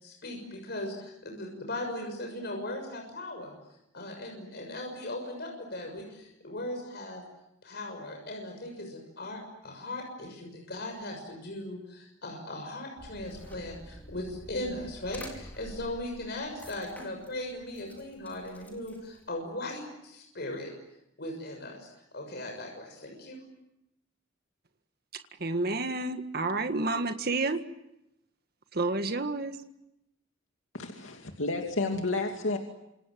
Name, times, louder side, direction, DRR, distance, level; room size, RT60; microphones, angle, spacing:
voice 1, 0.0-3.5 3.9-7.2 7.6-20.7 21.2-23.4, left 1 dB, 55° left, 6.6 m, -38 dB
sound 1, 13.0-19.3, equal, 10° left, 5.1 m, -48 dB
voice 2, 25.4-27.6 28.7-29.6, right 3 dB, 50° right, 1.8 m, -29 dB
voice 3, 30.7-32.6, left 2 dB, 85° left, 2.6 m, -31 dB
28.0 x 27.5 x 7.7 m
head